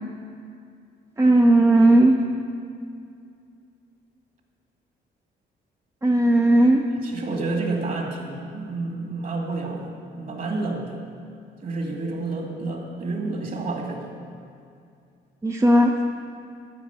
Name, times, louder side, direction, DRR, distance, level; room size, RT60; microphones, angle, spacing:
voice 1, 1.2-2.2 6.0-6.8 15.4-15.9, right 1 dB, 15° right, 2 dB, 0.7 m, -16 dB
voice 2, 7.0-11.0 11.6-14.1, right 3 dB, 45° right, 1 dB, 2.3 m, -29 dB
13.0 x 5.1 x 8.3 m, 2.4 s
cardioid pair, 90°, 20 cm